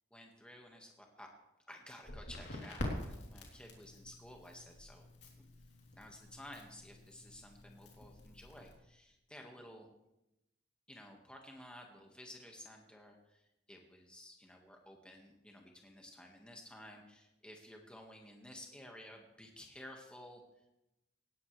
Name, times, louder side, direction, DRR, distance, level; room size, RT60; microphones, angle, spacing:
voice 1, 0.1-1.3 1.7-5.1 5.3-5.4 5.9-9.9 10.9-20.4, left 1 dB, 5° left, 1 dB, 1.6 m, -54 dB
Crackle, 2.0-8.7, left 1 dB, 60° left, 3.2 m, -47 dB
18.5 x 15.0 x 3.3 m, 0.92 s
head